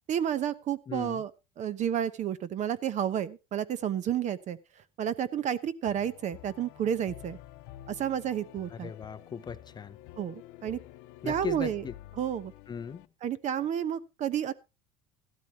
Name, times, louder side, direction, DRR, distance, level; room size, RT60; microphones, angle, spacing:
voice 1, 0.1-1.3 1.6-4.6 5.0-7.4 7.9-8.9 10.2-10.8 11.2-11.8 12.2-12.5 13.2-14.5, right 9 dB, 40° right, 1.0 m, -31 dB
voice 2, 0.9-1.2 8.7-10.0 11.2-11.9 12.7-13.0, left 6 dB, 25° left, 0.6 m, -38 dB
sound 1, 5.9-13.1, left 14 dB, 70° left, 1.0 m, -49 dB
15.0 x 12.5 x 2.9 m
supercardioid pair, 120°, 18 cm